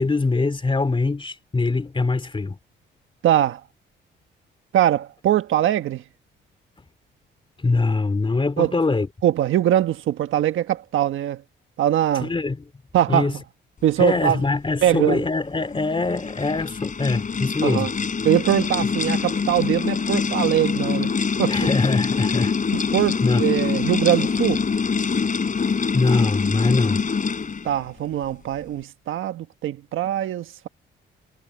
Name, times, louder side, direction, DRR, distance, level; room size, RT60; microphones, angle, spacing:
voice 1, 0.0-2.6 7.6-9.1 12.2-12.6 13.1-13.3 14.0-17.9 21.5-22.5 23.2-23.4 25.6-27.1, left 3 dB, 25° left, 3.2 m, -23 dB
voice 2, 3.2-3.6 4.7-6.0 8.6-8.7 9.2-11.4 11.8-12.3 12.9-13.4 13.8-14.4 14.8-15.2 17.6-17.9 18.2-21.6 22.7-24.7 27.6-30.7, right 11 dB, 80° right, 1.5 m, -22 dB
sound 1, 15.6-27.8, left 5 dB, 40° left, 4.1 m, -24 dB
cardioid pair, 80°, 20 cm